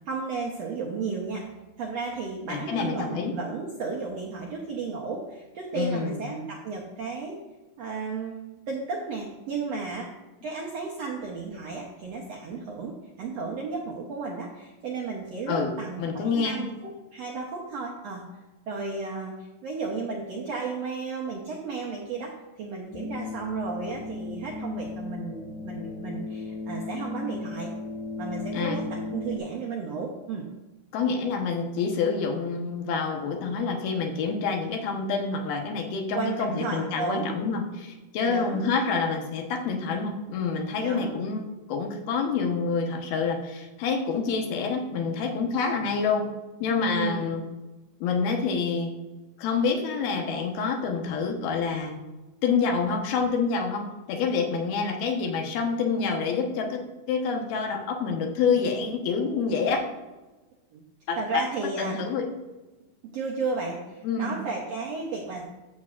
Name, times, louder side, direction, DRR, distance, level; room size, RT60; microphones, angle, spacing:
voice 1, 0.0-1.5 1.8-7.4 7.8-8.4 8.7-10.1 10.4-18.2 18.7-27.7 28.2-30.5 36.1-37.3 38.3-38.6 40.8-41.1 46.9-47.3 60.7-60.8 61.2-62.0 63.0-65.4, right 4 dB, 75° right, -2 dB, 1.5 m, -33 dB
voice 2, 2.5-3.3 5.8-6.2 15.5-15.7 16.0-16.7 28.5-28.8 30.9-46.3 46.6-47.4 48.0-48.9 49.4-52.0 52.4-56.8 57.1-59.8 61.1-61.4 61.8-62.3 64.0-64.4, left 5 dB, 90° left, 3 dB, 3.1 m, -27 dB
sound 1, 22.9-29.4, left 3 dB, 70° left, 2.0 m, -36 dB
13.0 x 7.4 x 2.5 m, 1.1 s
omnidirectional pair, 4.2 m